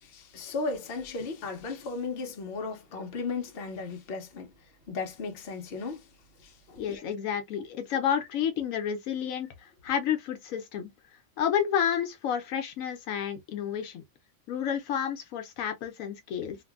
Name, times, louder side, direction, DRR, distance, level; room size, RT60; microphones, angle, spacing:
voice 1, 0.0-4.5 4.9-6.1 6.4-7.0, left 4 dB, 55° left, 0.9 m, -35 dB
voice 2, 6.8-10.9 11.4-14.0 14.5-16.6, left 8 dB, 85° left, 1.0 m, -30 dB
2.9 x 2.5 x 2.3 m
omnidirectional pair, 1.4 m